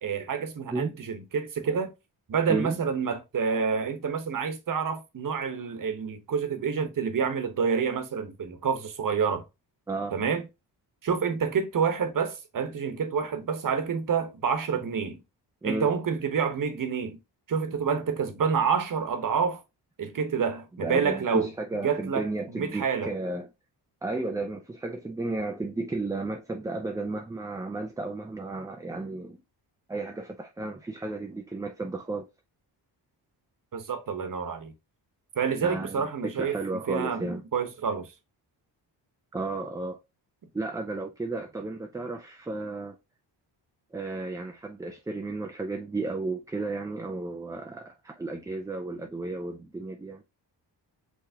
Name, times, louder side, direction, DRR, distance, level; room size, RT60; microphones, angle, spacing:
voice 1, 0.0-1.9 2.3-9.4 10.1-10.5 11.0-15.2 15.6-17.2 17.5-19.6 20.0-21.5 21.8-22.3 22.5-23.1 33.7-34.7 35.3-36.5 36.9-38.1, right 6 dB, 50° right, 1.1 m, -28 dB
voice 2, 20.7-23.5 24.0-29.4 29.9-32.3 35.6-37.4 39.3-40.0 40.5-43.0 43.9-50.2, right 2 dB, 10° right, 0.3 m, -33 dB
5.7 x 3.2 x 2.8 m
wide cardioid pair, 125°, 43 cm